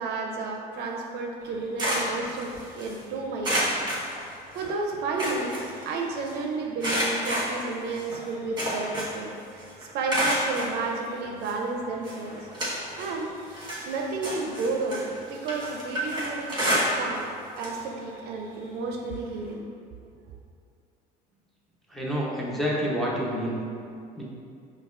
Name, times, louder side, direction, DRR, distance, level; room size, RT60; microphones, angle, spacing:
voice 1, 0.0-3.7 4.5-9.3 9.9-12.4 13.0-13.3 13.9-17.3 17.6-19.7, right 3 dB, 60° right, 1 dB, 0.5 m, -32 dB
sound 1, 1.4-3.0 3.4-4.7 5.0-6.3 6.8-9.3 9.6-10.7 11.4-11.5 12.0-13.2 13.5-17.3 17.6-17.8 18.2-18.3 19.5-19.6, equal, 25° right, 1.4 m, -29 dB
voice 2, 21.9-23.6 24.2-24.3, equal, ahead, -6 dB, 0.7 m, -28 dB
5.2 x 2.3 x 2.4 m, 2.4 s
supercardioid pair, 100°, 19 cm